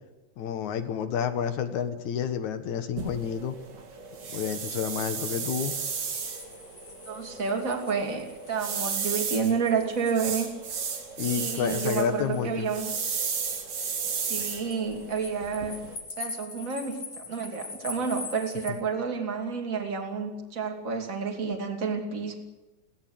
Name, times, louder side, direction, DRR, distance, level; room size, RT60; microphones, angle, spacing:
voice 1, 0.4-3.6 4.3-5.7 11.2-12.7, left 8 dB, 65° left, 10 dB, 2.7 m, -29 dB
sound 1, 3.0-16.0, right 6 dB, 75° right, 4.4 m, -34 dB
sound 2, 6.0-18.7, left 4 dB, 25° left, 2.6 m, -44 dB
voice 2, 7.1-10.5 11.2-12.9 14.1-15.8 16.2-22.3, right 5 dB, 25° right, 2 dB, 2.8 m, -30 dB
23.0 x 17.5 x 7.9 m, 1.1 s
omnidirectional pair, 3.7 m